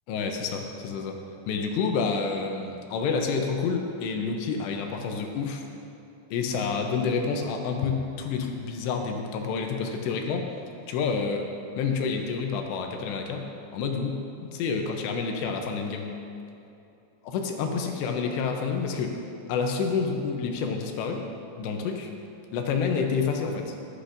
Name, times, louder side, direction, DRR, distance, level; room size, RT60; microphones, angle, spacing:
voice 1, 0.1-1.2 1.5-5.6 6.3-10.5 10.9-11.4 11.8-13.4 13.7-16.1 17.2-19.2 19.5-21.2 21.6-22.1 22.5-23.8, left 5 dB, 75° left, 3 dB, 2.7 m, -28 dB
17.0 x 10.0 x 2.6 m, 2.7 s
omnidirectional pair, 5.5 m